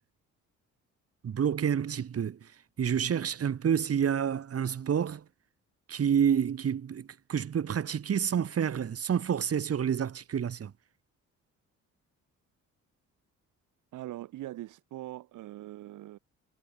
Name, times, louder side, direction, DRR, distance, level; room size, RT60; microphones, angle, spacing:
voice 1, 1.2-2.4 2.8-5.2 5.9-10.7, right 8 dB, 50° right, 3.4 m, -28 dB
voice 2, 13.9-16.2, right 15 dB, 85° right, 2.2 m, -42 dB
cardioid pair, 90°, 30 cm